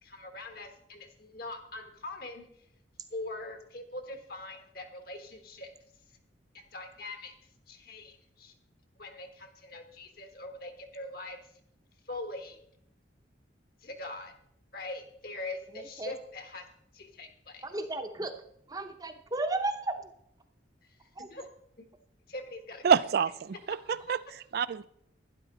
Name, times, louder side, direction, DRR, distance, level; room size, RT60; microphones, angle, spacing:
voice 1, 0.0-2.5 3.1-5.7 6.5-7.4 7.7-8.5 9.0-11.4 12.0-12.6 13.8-14.3 14.7-16.6 16.9-17.6 21.2-21.4 22.3-22.8, left 2 dB, 55° left, 1.4 m, -42 dB
voice 2, 15.7-16.1 17.6-18.4 18.7-20.1 21.1-21.3, right 2 dB, 20° right, 0.8 m, -34 dB
voice 3, 22.8-24.2 24.5-24.8, right 7 dB, 55° right, 0.3 m, -27 dB
11.5 x 10.5 x 4.0 m
head